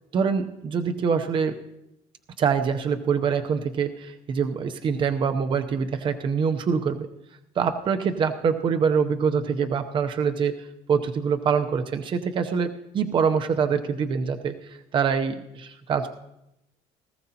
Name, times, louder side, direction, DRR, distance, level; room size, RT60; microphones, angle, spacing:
voice 1, 0.1-1.5 2.4-7.1 7.6-10.5 10.9-16.1, right 6 dB, 35° right, 7 dB, 0.7 m, -25 dB
18.5 x 14.5 x 2.9 m, 0.86 s
cardioid pair, 135°, 14 cm